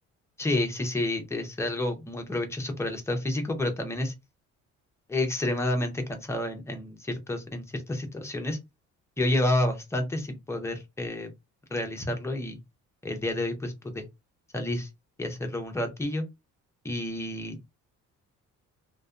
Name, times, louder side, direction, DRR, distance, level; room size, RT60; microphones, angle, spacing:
voice 1, 0.4-4.1 5.1-8.6 9.2-11.3 11.7-12.6 13.0-14.1 14.5-14.9 15.2-16.2 16.8-17.6, left 1 dB, 10° left, 0.5 m, -29 dB
2.6 x 2.1 x 2.3 m
cardioid pair, 140°, 30 cm